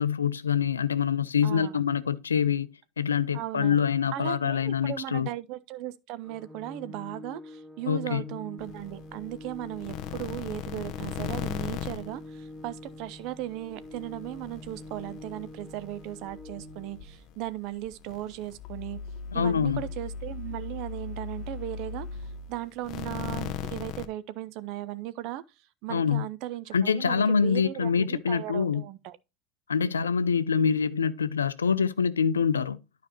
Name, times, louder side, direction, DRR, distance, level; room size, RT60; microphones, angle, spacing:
voice 1, 0.0-2.7 3.0-5.3 7.9-8.2 19.3-19.9 25.9-26.3 26.7-28.8 29.7-32.8, left 6 dB, 80° left, 0.4 m, -25 dB
voice 2, 1.4-1.8 3.3-3.8 4.1-19.0 19.3-22.1 22.5-25.4 25.8-29.2, right 14 dB, 50° right, 0.6 m, -37 dB
Organ, 6.2-17.2, left 2 dB, ahead, 0.9 m, -46 dB
sound 1, 8.6-13.1 13.3-24.1, left 7 dB, 45° left, 0.8 m, -38 dB
12.0 x 5.1 x 2.9 m
figure-of-eight pair, 75°, 0 cm